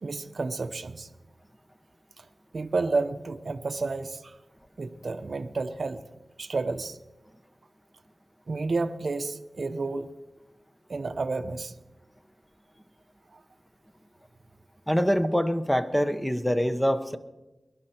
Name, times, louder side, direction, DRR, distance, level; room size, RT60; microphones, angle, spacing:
voice 1, 0.0-1.1 2.2-2.3 2.5-4.4 4.8-6.0 6.4-7.0 8.5-10.1 10.9-11.7, right 3 dB, 65° right, 9 dB, 0.7 m, -31 dB
voice 2, 14.9-17.2, equal, 5° left, 10 dB, 0.9 m, -24 dB
21.5 x 11.5 x 4.4 m, 1.1 s
cardioid pair, 60°, 0 cm